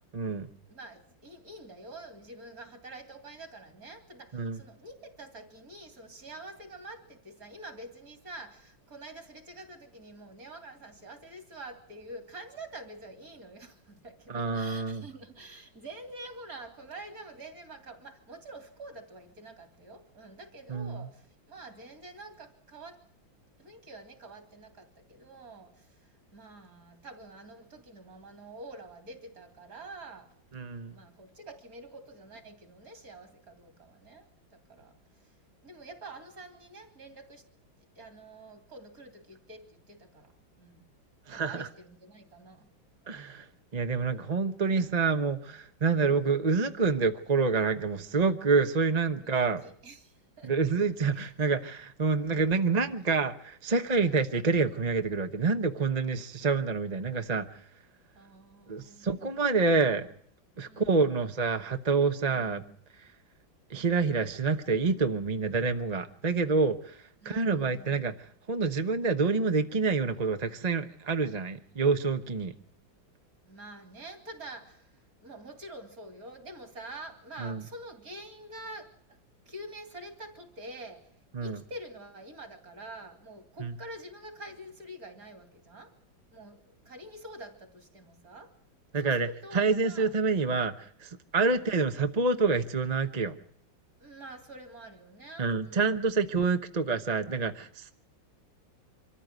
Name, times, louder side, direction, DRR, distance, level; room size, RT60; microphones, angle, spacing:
voice 1, 0.1-0.5 4.3-4.6 14.3-15.0 20.7-21.0 30.5-30.9 41.3-41.7 43.1-43.5 43.7-49.6 50.4-57.6 58.7-60.1 60.6-62.6 63.7-68.1 68.5-72.5 77.4-77.6 81.3-81.6 83.6-83.7 88.9-89.3 89.5-93.4 95.4-97.9, right 4 dB, 30° right, 8 dB, 0.8 m, -27 dB
voice 2, 0.7-23.0 23.6-26.0 26.3-30.3 30.9-34.9 35.6-37.4 38.0-40.3 40.6-40.8 41.3-42.7 46.0-46.2 49.2-50.5 51.1-51.3 53.9-54.2 58.2-59.2 60.7-61.3 67.2-68.2 73.5-79.2 79.5-81.1 81.4-85.9 86.3-88.6 89.0-90.1 91.4-91.6 94.0-96.0, right 1 dB, 50° right, 7 dB, 3.7 m, -47 dB
25.0 x 14.0 x 9.5 m, 0.64 s
omnidirectional pair, 2.0 m